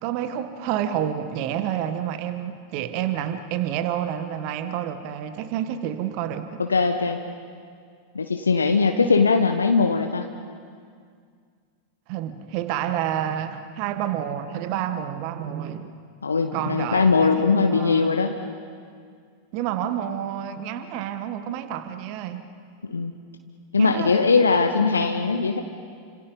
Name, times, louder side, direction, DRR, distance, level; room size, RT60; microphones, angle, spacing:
voice 1, 0.0-6.6 12.1-15.9 16.5-18.2 19.5-22.5 23.8-24.2, right 10 dB, 45° right, 10 dB, 1.4 m, -29 dB
voice 2, 6.6-7.2 8.1-10.3 16.2-18.4 22.8-23.1 23.7-25.6, left 4 dB, 75° left, 5 dB, 1.1 m, -20 dB
29.5 x 26.5 x 5.5 m, 2.1 s
figure-of-eight pair, 90°, 0 cm